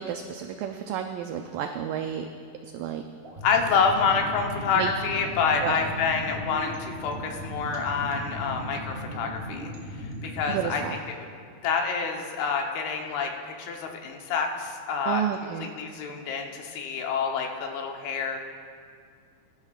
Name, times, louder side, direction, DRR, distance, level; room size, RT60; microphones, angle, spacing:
voice 1, 0.0-2.3 2.7-3.0 4.8-4.9 5.6-5.8 10.5-11.0 15.1-15.7, right 9 dB, 85° right, 5 dB, 1.9 m, -31 dB
sound 1, 3.2-10.9, equal, 30° right, 1.1 m, -37 dB
voice 2, 3.4-9.7 10.2-11.3 11.6-15.2 15.6-18.4, left 5 dB, 85° left, 2 dB, 3.0 m, -27 dB
21.5 x 12.0 x 2.4 m, 2.2 s
omnidirectional pair, 4.4 m